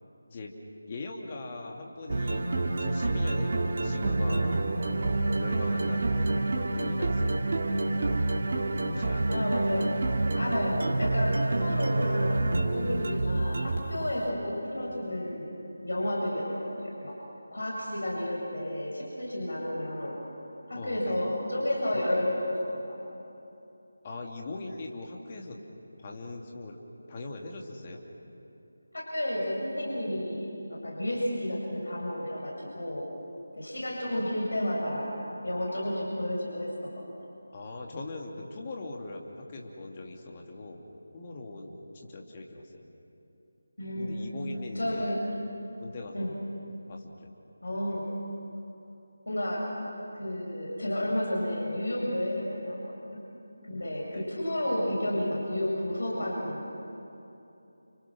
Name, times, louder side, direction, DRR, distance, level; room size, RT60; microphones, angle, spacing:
voice 1, 0.9-2.5 2.8-4.6 5.4-7.3 7.7-8.3 8.9-9.4 20.8-21.1 21.9-22.0 24.0-25.6 26.0-26.8 27.1-28.0 37.5-40.8 41.1-42.9 43.9-45.2 45.8-46.3 46.9-47.3 53.8-54.2, left 2 dB, 25° left, 0 dB, 2.8 m, -41 dB
sound 1, 2.1-14.0, right 2 dB, 40° right, 2.3 m, -28 dB
voice 2, 9.3-9.9 10.4-15.5 15.8-17.1 17.5-20.2 20.7-23.0 28.9-33.0 33.6-37.0 43.8-44.1 44.8-45.2 46.1-46.3 47.6-48.1 49.3-49.6 50.1-52.9 53.6-56.7, left 1 dB, 65° left, -3 dB, 7.3 m, -31 dB
30.0 x 29.5 x 6.3 m, 2.9 s
figure-of-eight pair, 160°, 0 cm